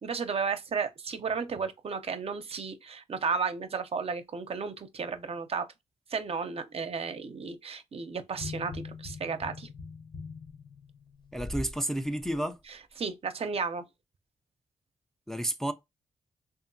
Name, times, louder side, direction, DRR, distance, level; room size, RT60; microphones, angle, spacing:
voice 1, 0.0-5.7 6.1-9.7 13.0-13.8, right 5 dB, 50° right, 0.5 m, -33 dB
sound 1, 8.3-11.8 12.2-12.4, left 3 dB, 40° left, 0.7 m, -41 dB
voice 2, 11.3-12.6 15.3-15.7, right 1 dB, 5° left, 0.4 m, -31 dB
2.8 x 2.4 x 2.6 m
cardioid pair, 55°, 13 cm